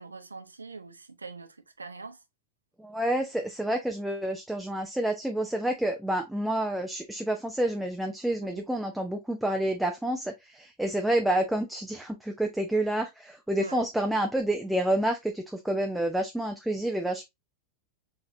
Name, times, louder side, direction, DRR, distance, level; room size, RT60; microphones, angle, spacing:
voice 1, 0.0-2.2 13.6-13.8, right 4 dB, 80° right, 0.6 m, -43 dB
voice 2, 2.8-17.2, right 1 dB, 5° right, 0.6 m, -29 dB
4.0 x 4.0 x 2.6 m
figure-of-eight pair, 90°, 0 cm